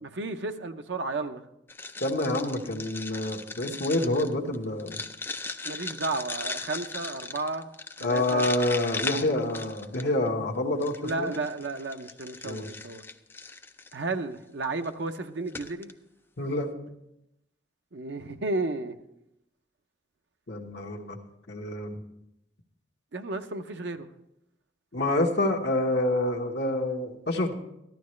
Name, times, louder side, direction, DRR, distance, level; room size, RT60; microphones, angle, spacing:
voice 1, 0.0-1.4 5.6-7.7 8.0-8.4 11.0-13.0 13.9-15.9 17.9-19.0 23.1-24.1, right 3 dB, 75° right, 7 dB, 0.7 m, -33 dB
sound 1, 1.7-10.3 10.8-14.0 14.6-14.9 15.1-15.2 15.5-15.9, left 3 dB, 10° left, 0.4 m, -38 dB
voice 2, 2.0-5.0 8.0-11.3 12.4-12.7 16.4-16.7 20.5-21.2 21.5-22.0 24.9-27.5, left 1 dB, 65° left, 1 dB, 1.2 m, -27 dB
14.0 x 11.5 x 3.2 m, 0.85 s
head